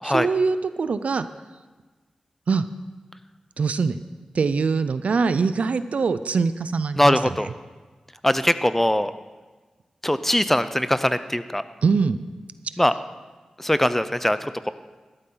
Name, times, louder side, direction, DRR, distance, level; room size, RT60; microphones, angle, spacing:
voice 1, 0.0-1.2 2.5-2.6 3.6-4.0 4.3-7.2 11.8-12.2, right 4 dB, 75° right, 13 dB, 0.5 m, -23 dB
voice 2, 7.0-7.5 8.2-9.1 10.0-11.6 12.8-12.9 13.6-14.7, left 1 dB, 10° left, 13 dB, 0.6 m, -21 dB
12.5 x 12.0 x 3.9 m, 1.3 s
cardioid pair, 45°, 2 cm